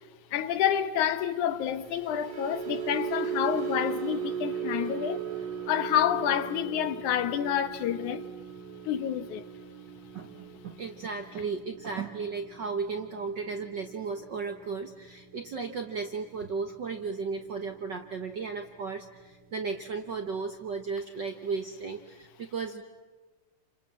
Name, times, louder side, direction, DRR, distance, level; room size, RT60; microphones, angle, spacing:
voice 1, 0.3-5.2 5.7-8.3 8.9-9.4, left 10 dB, 75° left, 2.4 m, -28 dB
sound 1, 1.7-18.1 18.4-18.7 19.1-19.3, right 8 dB, 80° right, 3.3 m, -39 dB
voice 2, 10.1-22.8, right 5 dB, 55° right, 1.3 m, -35 dB
29.0 x 26.5 x 7.4 m
omnidirectional pair, 3.6 m